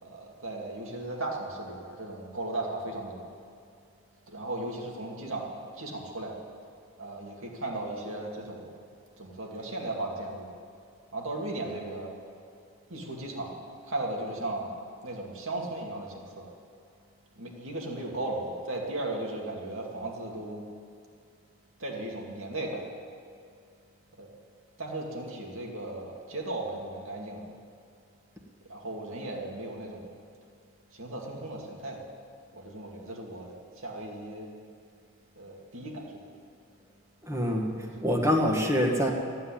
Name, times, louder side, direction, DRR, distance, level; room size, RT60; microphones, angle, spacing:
voice 1, 0.0-3.3 4.3-6.4 7.0-8.6 9.2-10.5 11.1-12.1 12.9-13.6 13.9-14.7 15.0-16.5 17.4-20.7 21.8-22.8 24.2-24.3 24.8-27.4 28.7-30.1 31.0-32.0 32.5-34.5 35.4-36.1 37.8-38.0, right 2 dB, 65° right, 0 dB, 2.5 m, -36 dB
voice 2, 37.3-39.1, equal, 15° right, 1 dB, 1.7 m, -25 dB
15.0 x 9.5 x 8.8 m, 2.4 s
head